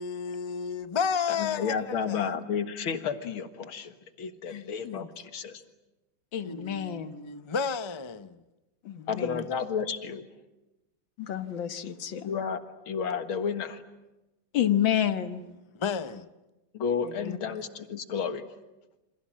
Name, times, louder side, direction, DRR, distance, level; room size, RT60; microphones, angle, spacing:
voice 1, 0.0-2.3 6.4-8.4 15.7-16.2, left 6 dB, 45° left, 0.3 m, -32 dB
voice 2, 1.3-5.6 9.1-10.3 12.3-12.6 12.9-13.8 16.7-18.5, left 6 dB, 90° left, 2.5 m, -32 dB
voice 3, 4.5-5.1 6.3-7.1 8.9-9.5 11.2-12.3 14.5-15.4 17.0-17.4, left 10 dB, 70° left, 2.1 m, -30 dB
28.5 x 27.0 x 7.5 m
omnidirectional pair, 2.2 m